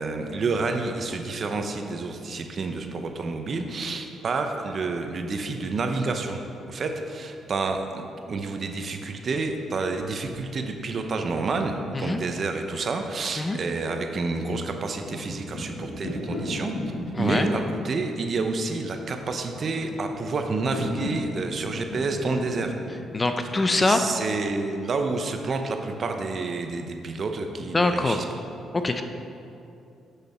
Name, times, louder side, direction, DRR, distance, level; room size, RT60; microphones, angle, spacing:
voice 1, 0.0-6.4 6.7-16.7 17.2-22.8 23.7-28.2, right 3 dB, 45° right, 5 dB, 0.7 m, -29 dB
sound 1, 14.9-24.4, left 1 dB, 90° left, 1.5 m, -35 dB
voice 2, 17.1-17.5 23.1-24.0 27.7-28.2 28.7-29.0, left 2 dB, 25° left, 7 dB, 0.5 m, -23 dB
7.3 x 6.8 x 4.3 m, 2.7 s
cardioid pair, 90°, 0 cm